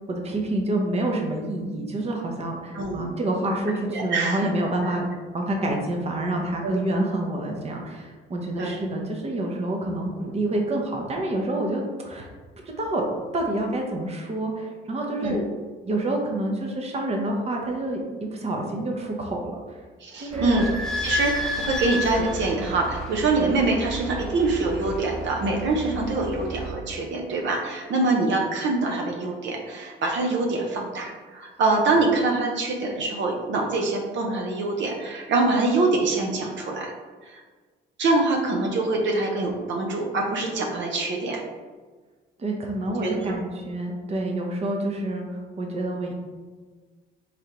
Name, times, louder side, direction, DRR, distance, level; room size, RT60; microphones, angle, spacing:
voice 1, 0.1-5.1 5.3-12.3 12.7-13.1 13.3-15.4 15.8-19.8 20.2-20.6 42.4-46.1, right 1 dB, 30° right, 1 dB, 0.7 m, -28 dB
voice 2, 2.7-3.1 3.9-4.5 6.6-6.7 8.6-8.8 15.2-15.4 20.0-20.6 21.0-36.9 37.3-37.4 38.0-41.4 43.0-43.1, right 3 dB, 70° right, 1 dB, 0.6 m, -24 dB
Idling / Squeak, 20.3-26.7, equal, 5° left, 0.7 m, -32 dB
3.6 x 3.3 x 2.9 m, 1.4 s
cardioid pair, 90°, 20 cm